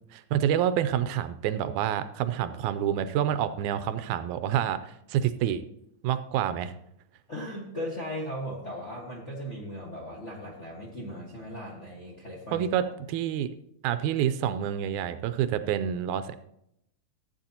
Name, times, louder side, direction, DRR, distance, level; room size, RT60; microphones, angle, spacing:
voice 1, 0.1-5.6 6.0-6.7 12.5-13.5 13.8-16.3, right 10 dB, 85° right, 12 dB, 2.0 m, -28 dB
voice 2, 7.3-12.9, equal, 40° left, -2 dB, 1.0 m, -37 dB
14.5 x 8.4 x 2.8 m, 0.77 s
omnidirectional pair, 3.5 m